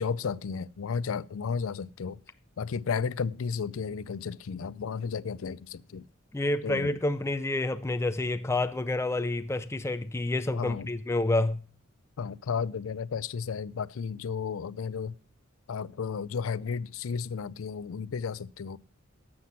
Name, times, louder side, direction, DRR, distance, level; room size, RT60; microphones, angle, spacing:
voice 1, 0.0-2.2 2.6-6.1 6.6-7.0 10.5-10.9 12.2-15.1 15.7-18.8, left 6 dB, 75° left, 0.4 m, -33 dB
voice 2, 6.3-11.6, left 2 dB, 15° left, 0.4 m, -28 dB
12.0 x 7.5 x 5.8 m
head